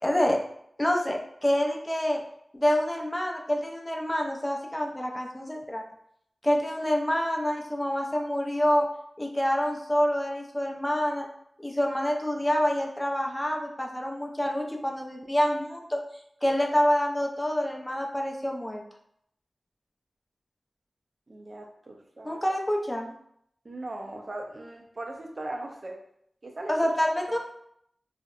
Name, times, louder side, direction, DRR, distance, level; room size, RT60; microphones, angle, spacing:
voice 1, 0.0-0.4 0.8-2.2 2.6-5.8 6.4-8.9 9.2-11.3 11.6-16.0 16.4-18.8 22.2-23.1 26.7-27.4, equal, 15° left, 1 dB, 0.4 m, -27 dB
voice 2, 21.3-22.4 23.6-26.0 26.4-26.9 27.3-27.4, right 2 dB, 50° right, 2 dB, 0.5 m, -39 dB
2.7 x 2.0 x 2.3 m, 0.71 s
cardioid pair, 40°, 0 cm